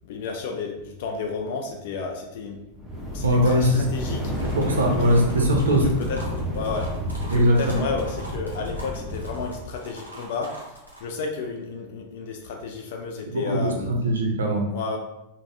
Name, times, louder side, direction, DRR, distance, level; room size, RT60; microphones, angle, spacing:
voice 1, 0.0-2.6 3.1-4.4 4.9-6.9 7.2-10.5 11.0-13.9 14.7-15.0, left 4 dB, 50° left, 3 dB, 0.3 m, -32 dB
sound 1, 2.7-9.7, equal, ahead, 0.7 m, -31 dB
voice 2, 3.2-3.8 4.4-5.8 7.3-7.8 13.3-14.6, equal, 70° right, 1 dB, 0.5 m, -21 dB
sound 2, 4.3-11.0, right 1 dB, 90° left, 0.7 m, -43 dB
3.3 x 2.1 x 2.5 m, 0.91 s
figure-of-eight pair, 90°, 0 cm